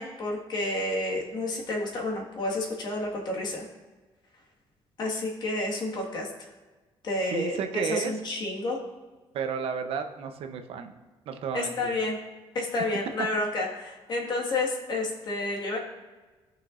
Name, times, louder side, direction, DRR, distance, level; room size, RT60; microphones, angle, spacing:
voice 1, 0.0-3.7 5.0-6.5 7.0-8.8 11.5-12.2 12.5-15.8, left 2 dB, 45° left, -1 dB, 1.7 m, -30 dB
voice 2, 7.3-8.1 9.3-10.9 11.3-11.9 14.2-14.3, right 7 dB, 70° right, 6 dB, 0.8 m, -32 dB
17.5 x 6.0 x 2.5 m, 1.3 s
cardioid pair, 175°, 10 cm